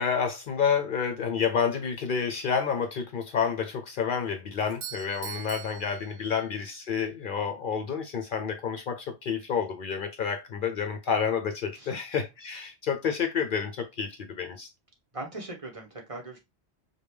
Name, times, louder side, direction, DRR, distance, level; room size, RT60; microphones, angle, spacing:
voice 1, 0.0-14.7, left 6 dB, 60° left, 0.6 m, -29 dB
Doorbell, 4.6-6.8, right 9 dB, 70° right, 1.0 m, -42 dB
voice 2, 15.1-16.4, right 2 dB, 35° right, 1.0 m, -40 dB
5.0 x 2.2 x 3.1 m
omnidirectional pair, 1.1 m